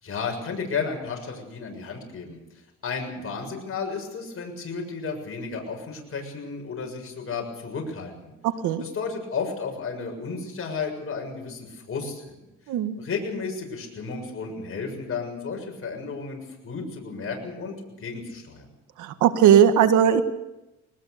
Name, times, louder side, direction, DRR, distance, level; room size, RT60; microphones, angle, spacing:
voice 1, 0.0-2.4 2.8-8.3 8.8-12.4 12.9-18.7, left 5 dB, 45° left, 1 dB, 7.0 m, -33 dB
voice 2, 19.0-20.2, right 9 dB, 85° right, 9 dB, 1.7 m, -18 dB
21.5 x 20.0 x 6.8 m, 0.95 s
cardioid pair, 90°, 30 cm